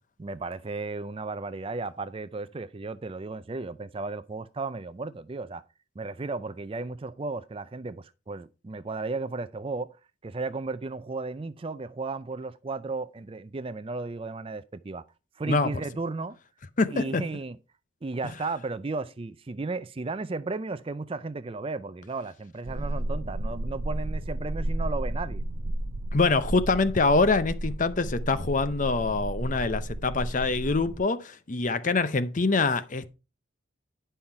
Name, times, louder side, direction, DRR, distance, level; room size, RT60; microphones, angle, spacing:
voice 1, 0.2-5.6 6.0-10.0 10.2-15.0 15.4-16.4 16.9-17.6 18.0-25.4, right 3 dB, 25° right, 0.4 m, -34 dB
voice 2, 16.8-17.2 26.1-33.1, left 3 dB, 40° left, 0.6 m, -25 dB
sound 1, 22.6-31.0, right 1 dB, 70° right, 0.7 m, -33 dB
10.5 x 5.6 x 4.5 m
head